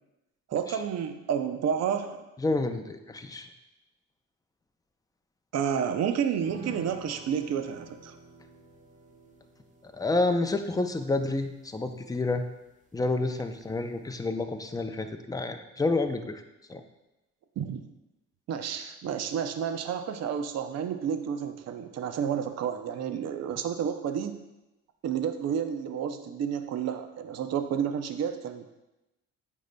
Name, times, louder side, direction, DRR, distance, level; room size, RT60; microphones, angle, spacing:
voice 1, 0.5-2.2 5.5-8.1 17.6-17.8 18.5-24.4 25.0-28.7, right 8 dB, 60° right, 8 dB, 0.6 m, -30 dB
voice 2, 2.4-3.5 9.8-12.4 12.9-16.4 16.7-16.8, left 2 dB, 10° left, 6 dB, 0.5 m, -29 dB
sound 1, 6.4-13.2 13.5-13.6 14.0-14.1, right 1 dB, 25° right, 1.0 m, -49 dB
9.2 x 5.4 x 2.2 m, 0.96 s
cardioid pair, 90°, 30 cm